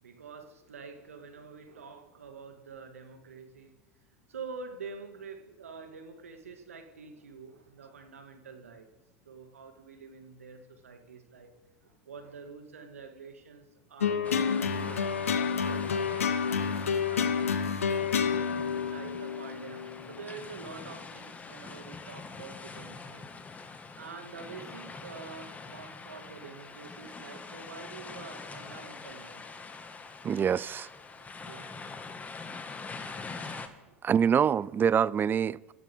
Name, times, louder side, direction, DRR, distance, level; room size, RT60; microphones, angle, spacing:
voice 1, 0.0-3.8 4.3-8.9 9.3-11.5 11.8-18.3 18.7-23.2 24.0-29.5 31.2-31.7 33.9-34.0, right 5 dB, 85° right, 2.1 m, -47 dB
sound 1, 14.0-20.5, left 6 dB, 85° left, 1.1 m, -29 dB
sound 2, 14.2-33.7, left 4 dB, 20° left, 1.8 m, -44 dB
voice 2, 30.2-30.9 33.5-33.7 34.0-35.7, right 8 dB, 25° right, 0.4 m, -26 dB
27.0 x 14.5 x 3.7 m
hypercardioid pair, 85°, 7 cm